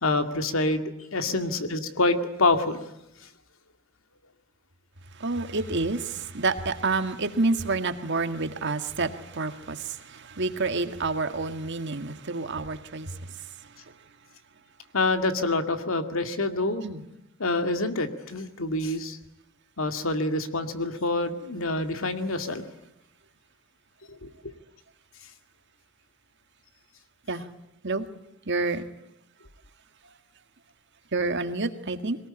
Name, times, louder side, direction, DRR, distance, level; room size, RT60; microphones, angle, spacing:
voice 1, 0.0-2.8 14.9-16.9 17.4-19.2 19.8-22.6 24.2-24.5, left 2 dB, 85° left, 7 dB, 2.2 m, -26 dB
voice 2, 5.2-13.2 16.8-17.0 27.3-27.4 27.8-28.0 28.5-28.8 31.1-32.2, right 3 dB, 60° right, 8 dB, 1.8 m, -28 dB
22.5 x 19.5 x 9.9 m, 0.84 s
head